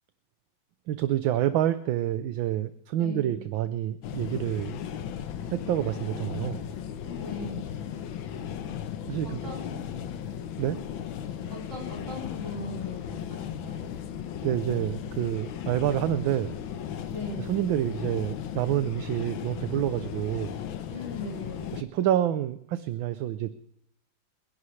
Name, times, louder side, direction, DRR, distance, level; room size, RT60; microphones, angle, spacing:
voice 1, 0.9-4.8 5.5-6.7 9.1-9.4 10.6-10.8 14.4-16.6 17.4-20.6 21.7-23.5, right 12 dB, 75° right, 12 dB, 1.5 m, -28 dB
voice 2, 3.0-3.4 7.0-7.6 9.2-9.9 11.5-13.9 17.1-17.5 20.9-21.7, left 2 dB, 35° right, -3 dB, 7.3 m, -39 dB
sound 1, 4.0-21.8, left 9 dB, 75° left, 1.7 m, -36 dB
29.0 x 11.0 x 3.2 m, 0.72 s
omnidirectional pair, 2.2 m